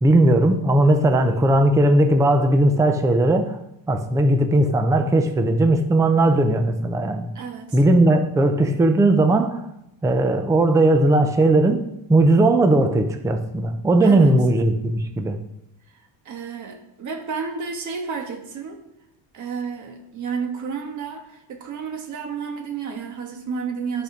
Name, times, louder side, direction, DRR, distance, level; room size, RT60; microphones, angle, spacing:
voice 1, 0.0-3.6 3.9-7.3 7.7-9.7 10.0-11.8 12.1-15.4, right 2 dB, 5° right, 7 dB, 0.4 m, -18 dB
voice 2, 1.0-1.4 7.3-7.8 14.0-14.3 15.9-18.8 19.3-24.0, right 5 dB, 40° right, 4 dB, 1.4 m, -31 dB
11.0 x 5.2 x 6.0 m, 0.85 s
cardioid pair, 170°, 46 cm